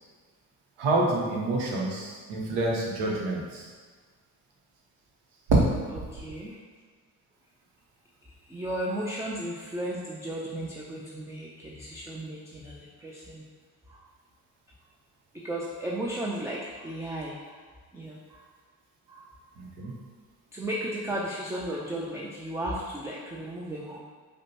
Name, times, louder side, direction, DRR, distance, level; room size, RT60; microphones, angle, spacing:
voice 1, 0.8-3.7 19.6-19.9, right 2 dB, 60° right, -1 dB, 0.9 m, -28 dB
voice 2, 6.1-6.6 8.5-13.4 13.9-14.0 15.3-17.6 17.9-18.4 19.1-19.3 19.8-19.9 20.5-24.0, right 1 dB, 5° right, -4 dB, 0.4 m, -35 dB
5.0 x 2.3 x 2.8 m, 1.5 s
hypercardioid pair, 55°, 45 cm